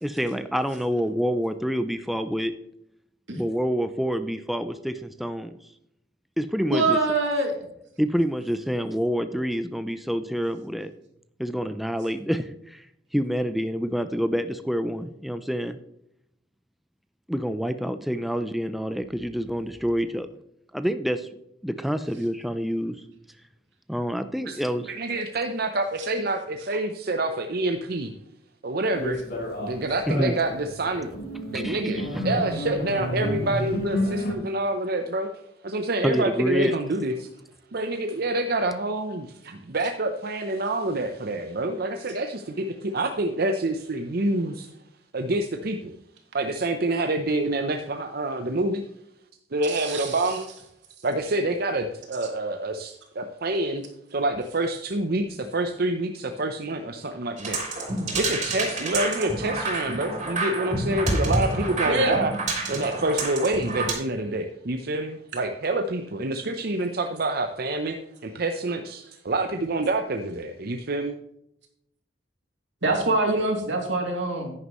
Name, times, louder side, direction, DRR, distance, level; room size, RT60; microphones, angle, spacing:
voice 1, 0.0-2.6 3.4-5.6 6.4-7.0 8.0-10.9 11.4-12.9 13.1-15.8 17.3-20.3 20.7-21.3 21.6-23.0 23.9-24.9 30.1-30.4 31.5-31.8 36.0-36.7, equal, ahead, 10 dB, 0.4 m, -27 dB
voice 2, 6.7-7.6 49.7-50.2 61.9-62.2 72.8-74.5, right 2 dB, 85° right, 1 dB, 2.7 m, -24 dB
voice 3, 24.8-28.1 28.6-29.2 29.6-31.1 31.5-37.3 37.7-44.7 45.1-45.9 46.3-48.8 49.5-50.5 51.0-53.8 54.1-57.6 58.1-62.3 62.7-68.0 68.2-71.2, right 2 dB, 60° right, 5 dB, 0.8 m, -27 dB
sound 1, 28.9-34.3, equal, 55° left, 3.0 m, -30 dB
sound 2, 57.4-63.9, right 2 dB, 40° right, 3.5 m, -28 dB
10.5 x 9.8 x 3.1 m, 0.79 s
head